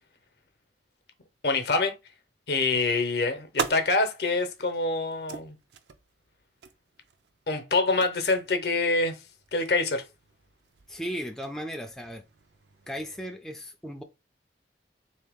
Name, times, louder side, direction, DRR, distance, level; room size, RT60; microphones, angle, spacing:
voice 1, 1.4-1.9 2.5-5.6 7.5-9.2 9.5-10.0, left 3 dB, 65° left, 0.7 m, -25 dB
sound 1, 2.8-13.3, right 5 dB, 75° right, 0.5 m, -42 dB
voice 2, 10.9-12.2 12.9-14.0, equal, 5° left, 0.3 m, -36 dB
3.7 x 2.8 x 3.5 m
head